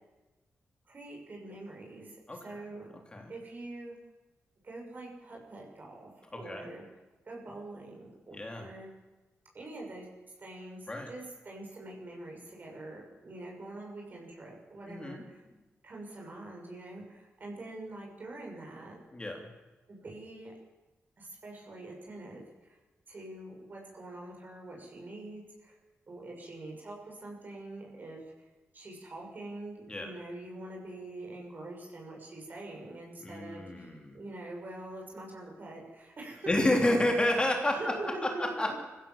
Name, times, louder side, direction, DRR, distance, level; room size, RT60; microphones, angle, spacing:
voice 1, 0.8-2.9 3.3-3.9 4.6-6.8 7.2-8.9 9.5-10.1 10.4-15.4 15.8-19.0 19.9-20.5 21.2-22.8 23.1-25.8 26.1-28.2 28.7-36.5 37.7-38.7, right 2 dB, 40° right, -1 dB, 6.7 m, -44 dB
voice 2, 2.3-2.6 3.1-3.3 6.3-6.7 8.3-8.7 10.9-11.1 14.9-15.2 19.1-19.5 29.9-30.1 33.2-34.2 36.5-38.7, left 1 dB, 20° left, 2 dB, 3.5 m, -30 dB
25.0 x 16.0 x 7.4 m, 1.1 s
wide cardioid pair, 130°, 5 cm